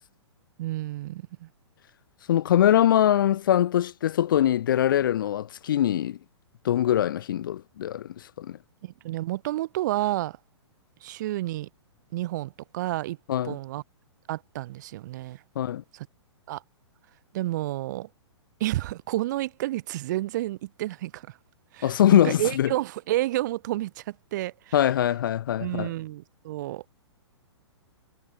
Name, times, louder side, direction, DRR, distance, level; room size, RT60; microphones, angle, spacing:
voice 1, 0.6-1.5 8.8-10.4 11.0-11.7 12.1-13.2 13.4-13.8 14.3-15.4 15.9-16.1 16.5-16.6 17.3-18.1 18.6-21.4 21.7-24.8 25.6-26.8, right 16 dB, 40° right, 0.8 m, -30 dB
voice 2, 2.3-6.2 6.6-8.6 13.3-13.6 15.6-15.8 21.8-22.7 24.7-25.9, left 11 dB, 45° left, 0.4 m, -22 dB
figure-of-eight pair, 115°, 15 cm